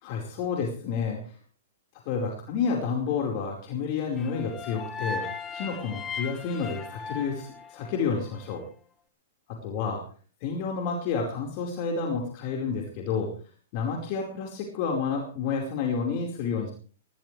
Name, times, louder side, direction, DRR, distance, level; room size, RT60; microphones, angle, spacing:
voice 1, 0.0-1.2 2.0-8.6 9.6-10.0 10.4-13.3 13.7-16.7, left 5 dB, 50° left, 0 dB, 4.8 m, -30 dB
sound 1, 4.2-8.4, left 5 dB, 20° left, 2.5 m, -37 dB
19.0 x 18.5 x 3.4 m, 0.41 s
hypercardioid pair, 130°, 0 cm